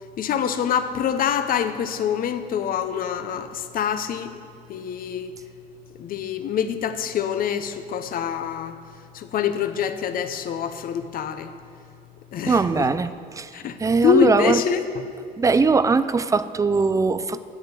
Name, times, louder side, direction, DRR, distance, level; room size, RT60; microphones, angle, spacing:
voice 1, 0.2-4.4 4.7-5.3 6.0-8.8 9.1-11.5 12.3-12.9 13.5-13.8 14.0-14.8, left 8 dB, 60° left, 10 dB, 0.8 m, -25 dB
voice 2, 12.5-13.5 13.8-14.6 15.4-17.4, right 4 dB, 20° right, 13 dB, 0.5 m, -20 dB
10.0 x 7.8 x 8.2 m, 2.3 s
cardioid pair, 110°, 17 cm